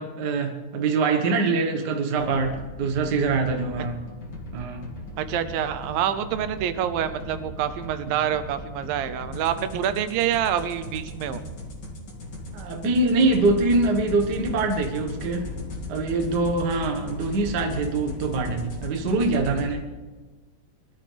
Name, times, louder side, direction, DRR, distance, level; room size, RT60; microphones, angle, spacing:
voice 1, 0.0-4.0 4.5-4.9 12.5-15.5 15.9-19.8, right 3 dB, 55° right, 4 dB, 1.1 m, -24 dB
sound 1, 2.2-19.7, left 2 dB, 35° left, 2.3 m, -37 dB
voice 2, 5.2-11.4, right 10 dB, 85° right, 11 dB, 2.5 m, -26 dB
23.0 x 12.5 x 3.4 m, 1.3 s
omnidirectional pair, 4.0 m